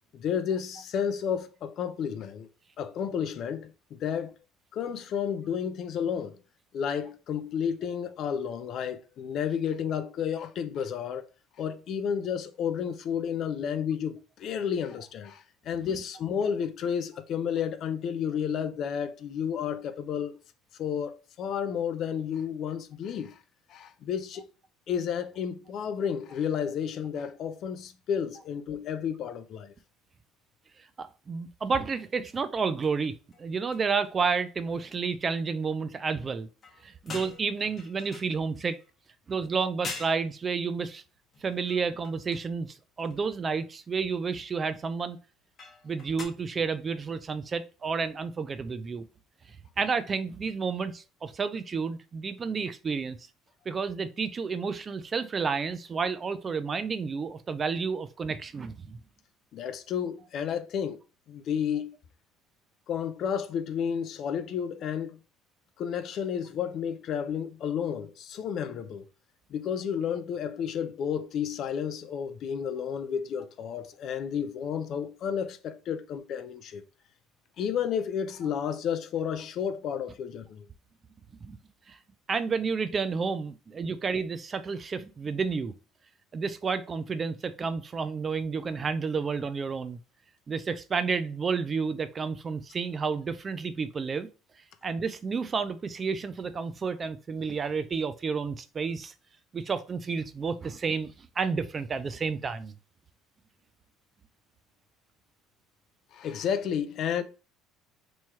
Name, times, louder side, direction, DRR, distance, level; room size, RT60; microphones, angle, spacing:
voice 1, 0.1-2.5 2.8-4.3 4.7-6.4 6.7-11.3 11.6-20.4 20.8-23.4 23.7-24.5 24.9-29.7 59.5-61.0 61.3-62.0 62.9-65.2 65.8-69.0 69.5-76.8 77.6-80.7 106.1-107.2, left 8 dB, 50° left, 0.4 m, -31 dB
voice 2, 31.0-36.5 36.8-38.8 39.3-41.0 41.4-45.2 45.8-49.0 49.8-53.2 53.7-59.0 81.4-81.6 81.9-82.0 82.3-85.7 86.3-90.0 90.5-94.3 94.8-99.1 99.5-102.7, right 5 dB, 30° right, 0.3 m, -31 dB
sound 1, 32.8-33.0 33.3-33.5 33.7-34.1 36.6-38.9 39.5-39.6 39.8-40.2 41.3-42.5 43.0-43.2 45.6-46.2, left 4 dB, 35° left, 0.9 m, -44 dB
3.0 x 2.3 x 4.2 m
cardioid pair, 120°, 0 cm